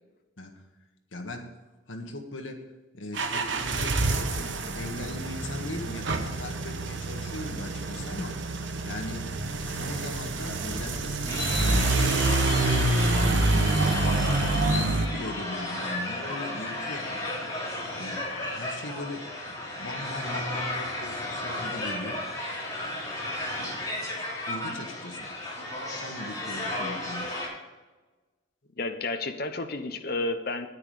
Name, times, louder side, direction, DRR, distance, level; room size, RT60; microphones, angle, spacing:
voice 1, 1.1-1.5 1.9-2.6 2.9-8.4 8.8-9.3 9.6-12.8 13.2-13.8 14.6-17.1 18.0-22.2 23.6-23.8 24.5-25.3 26.0-27.3, left 1 dB, 80° left, 4 dB, 1.5 m, -39 dB
sound 1, 3.1-15.1, right 2 dB, 70° right, 1.0 m, -27 dB
sound 2, 11.3-27.5, left 1 dB, 20° left, 2.9 m, -33 dB
voice 2, 28.8-30.7, left 2 dB, 50° left, 7 dB, 0.9 m, -31 dB
9.7 x 9.5 x 5.0 m, 1.2 s
head